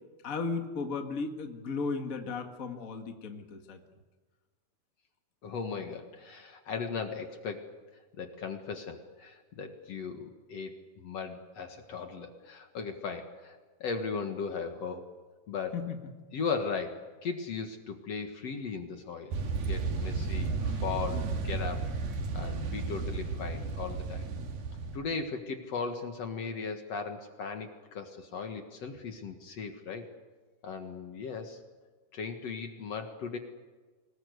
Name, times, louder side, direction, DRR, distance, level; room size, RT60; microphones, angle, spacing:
voice 1, 0.2-3.8 15.7-16.0, left 4 dB, 35° left, 4 dB, 1.5 m, -35 dB
voice 2, 5.4-7.8 8.1-15.1 15.5-15.8 16.3-21.9 22.3-24.3 24.9-30.1 30.6-31.6 32.1-33.4, left 5 dB, 50° left, 5 dB, 2.3 m, -37 dB
sound 1, 19.3-25.0, right 4 dB, 70° right, 4.0 m, -33 dB
25.5 x 20.0 x 8.1 m, 1.4 s
omnidirectional pair, 4.3 m